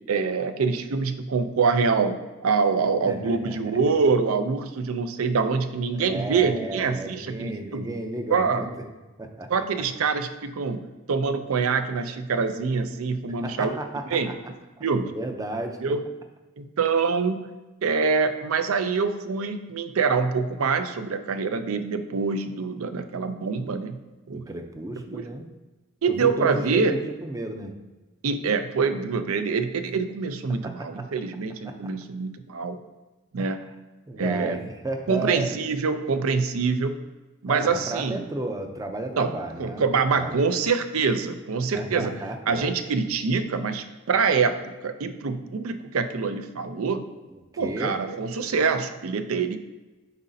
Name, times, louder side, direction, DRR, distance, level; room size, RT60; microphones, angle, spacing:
voice 1, 0.1-2.2 2.4-7.9 8.3-8.6 9.5-13.8 14.1-14.3 14.8-15.1 15.8-16.0 16.6-17.5 17.8-24.0 24.3-24.5 25.1-25.2 26.0-27.0 28.2-32.8 33.3-33.6 34.1-34.6 35.1-37.1 37.4-38.2 39.2-39.3 39.6-42.1 42.5-47.1 47.6-49.6, right 5 dB, 75° right, 9 dB, 0.5 m, -25 dB
voice 2, 3.1-3.8 5.9-8.7 9.2-9.5 13.4-14.0 14.8-15.8 24.3-25.5 26.1-27.8 30.6-31.1 31.6-31.7 33.4-33.6 34.1-34.6 34.8-35.5 37.5-40.4 41.7-42.7 47.3-48.0, right 1 dB, 15° right, 5 dB, 0.5 m, -33 dB
9.5 x 4.0 x 2.7 m, 1.1 s
head